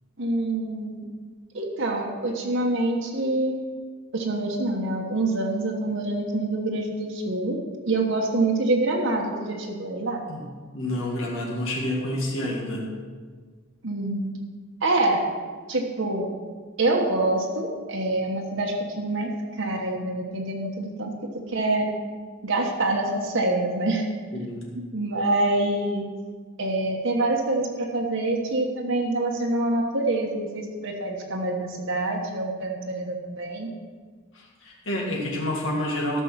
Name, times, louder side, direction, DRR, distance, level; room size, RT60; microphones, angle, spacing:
voice 1, 0.2-1.0 1.5-3.5 4.1-7.6 7.9-10.2 13.8-14.3 14.8-15.3 15.7-16.3 16.8-19.3 19.6-21.1 21.5-21.9 22.4-24.0 24.7-26.0 26.6-33.7, right 2 dB, 60° right, 0 dB, 1.3 m, -26 dB
voice 2, 10.7-12.9 24.3-24.7 34.3-36.2, left 1 dB, 60° left, -2 dB, 1.9 m, -29 dB
14.0 x 6.2 x 5.9 m, 1.5 s
head